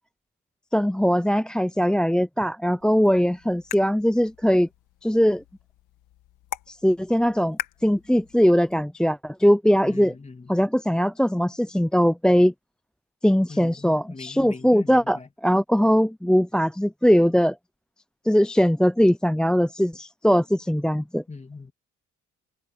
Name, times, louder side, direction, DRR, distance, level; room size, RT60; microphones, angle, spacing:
voice 1, 0.7-4.7 5.0-5.4 6.7-10.1 10.5-12.5 13.2-17.6 18.3-21.2, equal, 5° left, 0.5 m, -21 dB
sound 1, 2.8-8.8, left 14 dB, 85° left, 2.0 m, -41 dB
voice 2, 9.8-10.5 13.5-15.3 21.3-21.7, left 3 dB, 20° left, 2.7 m, -41 dB
cardioid pair, 90°, 30 cm